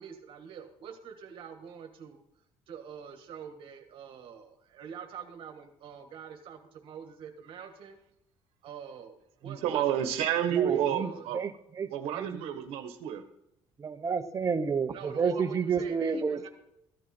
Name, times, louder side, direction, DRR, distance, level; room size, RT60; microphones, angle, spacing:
voice 1, 0.0-2.2 2.7-8.0 8.6-9.8 10.4-11.2 14.9-16.5, right 7 dB, 60° right, 1.7 m, -46 dB
voice 2, 9.4-11.4 11.8-13.3, right 10 dB, 85° right, 1.1 m, -30 dB
voice 3, 10.6-11.1 11.3-11.5 11.8-11.9 12.2-12.4 13.8-16.5, right 6 dB, 30° right, 1.0 m, -30 dB
14.5 x 10.5 x 4.4 m
cardioid pair, 115°, 10 cm